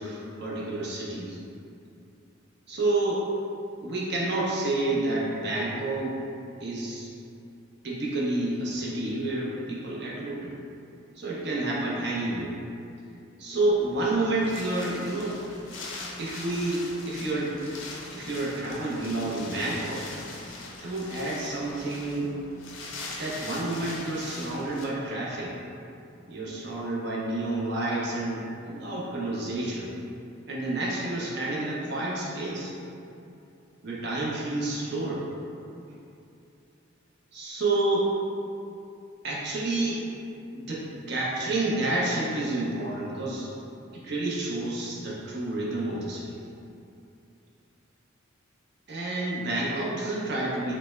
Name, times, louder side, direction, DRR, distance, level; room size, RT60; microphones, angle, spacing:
voice 1, 0.0-1.4 2.7-3.3 3.8-6.2 6.6-7.1 7.8-10.5 11.2-12.5 13.4-15.4 16.2-17.8 18.1-20.1 20.8-22.4 23.2-25.5 26.3-29.9 30.5-32.7 33.8-35.3 37.3-38.1 39.2-40.0 40.5-43.5 43.9-46.4 48.9-50.7, right 2 dB, 55° right, -5 dB, 0.6 m, -29 dB
Wind, 13.6-24.8, left 3 dB, 70° left, 0.4 m, -41 dB
3.3 x 2.1 x 3.1 m, 2.7 s
head